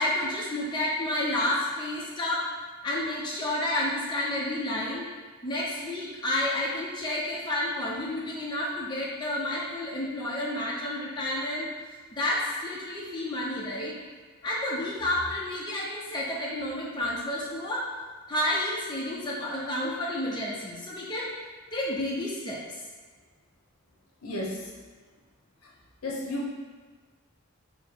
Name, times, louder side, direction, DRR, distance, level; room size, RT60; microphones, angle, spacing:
voice 1, 0.0-2.5 2.8-5.1 5.4-11.7 12.1-13.9 14.4-17.9 18.3-21.3 21.7-22.6, left 1 dB, 20° left, -5 dB, 0.5 m, -30 dB
voice 2, 24.2-24.7 25.6-25.7 26.0-26.5, left 1 dB, 90° left, -3 dB, 0.8 m, -33 dB
4.0 x 2.1 x 4.4 m, 1.4 s
head